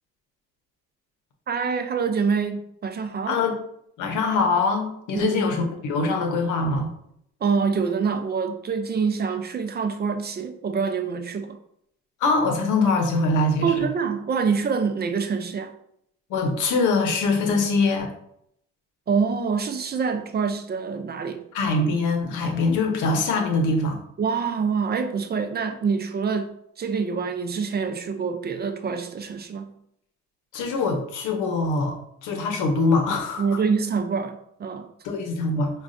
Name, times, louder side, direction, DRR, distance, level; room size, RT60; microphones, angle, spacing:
voice 1, 1.5-3.4 5.1-5.5 7.4-11.6 13.6-15.7 19.1-21.4 24.2-29.7 33.4-34.9, right 5 dB, 35° right, 0.4 m, -26 dB
voice 2, 4.0-6.9 12.2-13.8 16.3-18.1 21.5-24.0 30.5-33.6 35.0-35.8, left 3 dB, 85° left, 0.8 m, -23 dB
4.9 x 2.3 x 2.5 m
cardioid pair, 90°, 30 cm